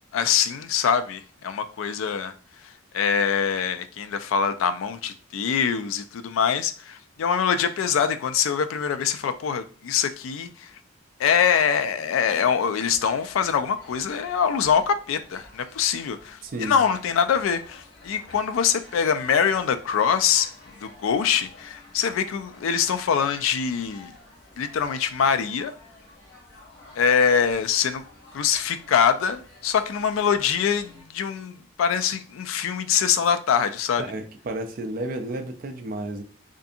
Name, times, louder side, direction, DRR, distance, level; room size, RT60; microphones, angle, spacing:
voice 1, 0.1-2.3 2.6-10.7 11.2-24.1 24.6-25.7 27.0-28.0 28.3-34.0, left 7 dB, 80° left, 0.3 m, -24 dB
sound 1, 12.9-31.0, left 2 dB, 55° left, 1.4 m, -50 dB
voice 2, 16.4-16.8 34.0-36.2, right 1 dB, 45° right, 0.4 m, -32 dB
2.6 x 2.5 x 2.4 m
head